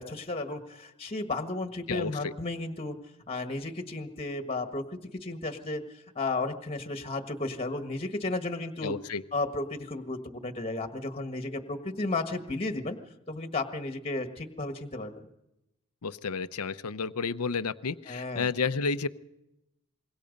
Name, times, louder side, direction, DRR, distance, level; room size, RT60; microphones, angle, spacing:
voice 1, 0.0-3.0 3.3-9.0 9.3-13.0 13.3-15.3 18.1-18.5, left 2 dB, 25° left, 7 dB, 1.5 m, -33 dB
voice 2, 1.9-2.3 8.8-9.2 16.0-19.1, left 5 dB, 75° left, 13 dB, 0.8 m, -31 dB
26.0 x 22.5 x 5.3 m, 0.88 s
head